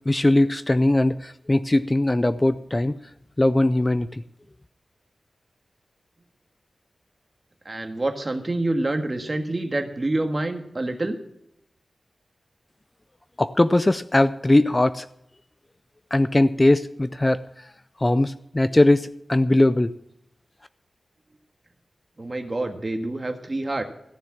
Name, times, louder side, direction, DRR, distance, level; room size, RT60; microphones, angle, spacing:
voice 1, 0.1-3.0 3.4-4.2 13.4-15.1 16.1-17.7 18.0-19.9, left 1 dB, 20° left, 13 dB, 0.4 m, -20 dB
voice 2, 7.6-11.2 22.2-23.8, right 2 dB, 30° right, 5 dB, 1.6 m, -27 dB
14.5 x 6.9 x 8.6 m, 0.77 s
wide cardioid pair, 95°, 0 cm